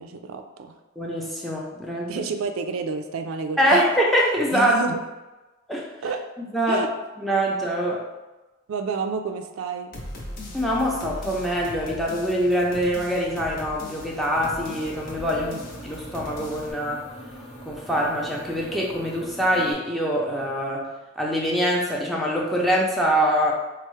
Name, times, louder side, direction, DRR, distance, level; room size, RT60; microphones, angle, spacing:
voice 1, 0.0-0.8 2.1-3.8 4.5-5.0 6.0-6.2 6.7-6.9 8.7-10.0 15.3-15.6, right 4 dB, 85° right, 7 dB, 0.3 m, -30 dB
voice 2, 1.0-2.1 3.6-4.8 5.7-5.9 6.5-6.8 7.2-8.1 10.5-15.5 15.8-17.0 17.7-20.9 21.2-23.5, equal, ahead, -3 dB, 0.4 m, -24 dB
sound 1, 9.9-16.7, left 1 dB, 45° left, 0.6 m, -39 dB
sound 2, 14.3-19.7, right 1 dB, 80° left, 0.9 m, -42 dB
4.4 x 2.0 x 3.0 m, 1.1 s
head